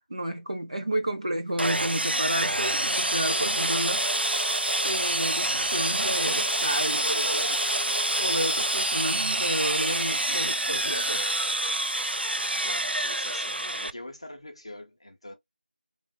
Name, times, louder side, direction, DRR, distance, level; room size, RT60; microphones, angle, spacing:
voice 1, 0.1-4.1 4.8-7.6 8.2-11.3, right 1 dB, 40° right, 0.6 m, -31 dB
Sawing, 1.6-13.9, right 1 dB, 85° right, 0.4 m, -27 dB
voice 2, 12.5-15.3, left 1 dB, 30° left, 0.6 m, -44 dB
3.3 x 2.3 x 2.2 m
figure-of-eight pair, 170°, 5 cm